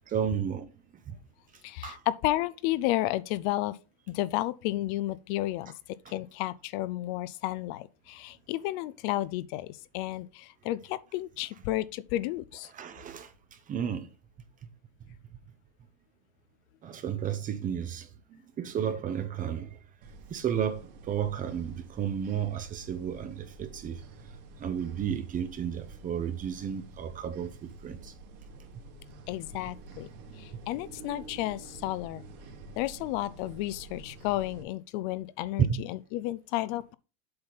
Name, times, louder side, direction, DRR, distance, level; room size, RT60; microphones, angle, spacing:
voice 1, 0.1-0.7 1.1-1.2 1.8-2.0 12.7-14.1 14.6-14.7 16.8-19.8 20.3-24.0 24.6-28.1 28.7-28.8 30.5-30.6 35.7-35.8, right 8 dB, 25° right, 0.8 m, -33 dB
voice 2, 1.6-3.8 4.1-12.7 29.3-30.1 30.4-32.2 32.8-36.9, left 16 dB, 50° left, 0.5 m, -32 dB
sound 1, 20.0-34.6, right 2 dB, 60° right, 2.4 m, -49 dB
7.9 x 5.4 x 4.1 m
supercardioid pair, 150°, 34 cm